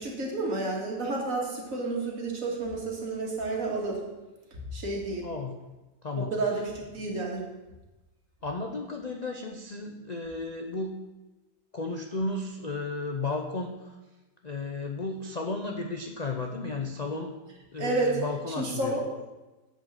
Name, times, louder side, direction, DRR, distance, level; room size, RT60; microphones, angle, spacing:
voice 1, 0.0-4.0 4.7-5.3 6.3-7.4 17.8-18.2 18.6-19.0, right 2 dB, 55° right, -1 dB, 2.3 m, -30 dB
voice 2, 5.2-5.5 6.0-6.3 8.4-10.9 11.7-13.9 14.4-17.3 17.7-19.0, left 3 dB, 45° left, 3 dB, 0.5 m, -33 dB
8.2 x 6.5 x 6.7 m, 1.1 s
omnidirectional pair, 1.7 m